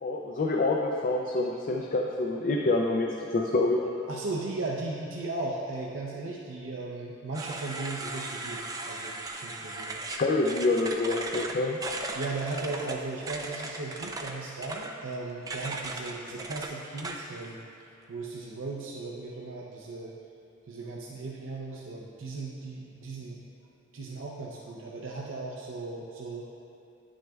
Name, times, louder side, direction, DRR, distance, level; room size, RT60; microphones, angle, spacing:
voice 1, 0.0-3.8 10.2-11.8, left 2 dB, 45° left, 0 dB, 0.4 m, -27 dB
voice 2, 4.1-10.1 12.1-20.1 20.7-23.4 23.9-26.4, right 3 dB, 75° right, -3 dB, 0.6 m, -37 dB
sound 1, 7.3-17.5, right 2 dB, 20° right, 0.4 m, -37 dB
9.9 x 6.2 x 2.3 m, 2.6 s
head